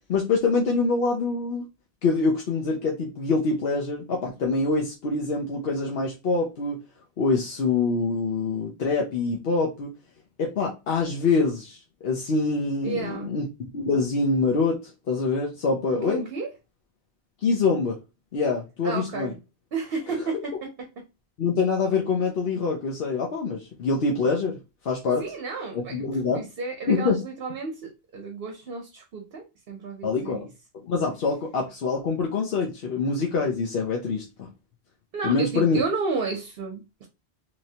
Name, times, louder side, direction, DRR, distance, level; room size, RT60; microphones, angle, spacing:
voice 1, 0.1-1.6 2.0-6.8 7.2-9.9 10.4-13.5 13.7-14.8 15.1-16.2 17.4-18.0 18.3-19.3 21.4-24.6 24.8-25.2 25.7-26.4 26.9-27.2 30.0-30.5 30.8-34.5 35.2-35.8, left 4 dB, 65° left, 0.9 m, -25 dB
voice 2, 12.8-13.3 15.9-16.5 18.8-19.3 19.7-20.7 25.2-26.0 26.3-30.4 35.1-37.1, right 4 dB, 60° right, 0.9 m, -32 dB
3.1 x 2.9 x 2.7 m
omnidirectional pair, 1.1 m